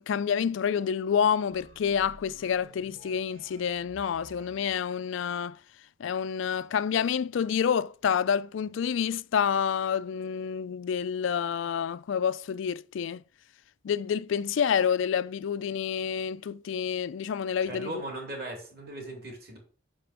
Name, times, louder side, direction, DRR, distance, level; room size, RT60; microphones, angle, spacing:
voice 1, 0.0-5.6 6.0-13.2 13.8-17.9, left 7 dB, 70° left, 0.3 m, -28 dB
sound 1, 1.5-4.9, right 2 dB, 80° right, 1.1 m, -53 dB
voice 2, 17.6-19.6, right 1 dB, 50° right, 2.9 m, -38 dB
6.0 x 5.1 x 5.8 m
head